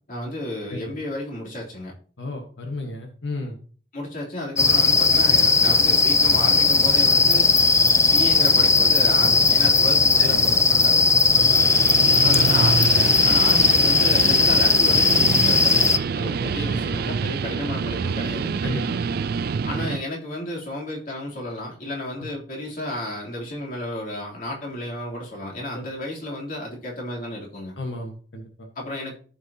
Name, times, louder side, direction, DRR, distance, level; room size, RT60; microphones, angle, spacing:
voice 1, 0.1-1.9 3.9-7.5 8.0-11.1 12.2-18.6 19.6-27.8 28.8-29.1, left 1 dB, 50° left, -3 dB, 3.5 m, -32 dB
voice 2, 2.2-3.6 10.2-10.5 11.3-11.7 12.0-12.4 16.2-16.5 18.6-19.2 22.2-22.3 25.7-25.9 27.8-28.7, left 2 dB, 90° left, 2 dB, 1.5 m, -34 dB
sound 1, 4.6-16.0, left 4 dB, 15° left, 0.5 m, -18 dB
Guitar, 11.3-20.0, right 5 dB, 55° right, 0.4 m, -27 dB
14.0 x 6.3 x 2.9 m, 0.42 s
head